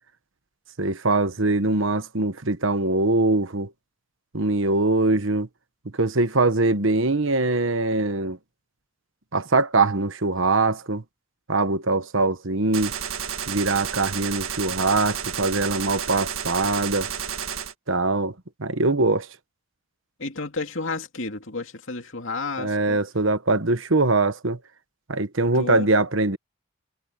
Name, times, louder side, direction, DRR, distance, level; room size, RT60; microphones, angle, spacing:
voice 1, 0.8-3.7 4.3-5.5 5.9-8.4 9.3-11.0 11.5-12.9 13.5-17.1 17.9-18.3 18.6-19.3 22.6-24.6 25.1-26.4, right 2 dB, 65° right, 1.3 m, -22 dB
Gunshot gunfire, 12.7-17.7, right 8 dB, 80° right, 1.7 m, -31 dB
voice 2, 20.2-23.0 25.5-25.9, left 3 dB, 65° left, 2.6 m, -31 dB
head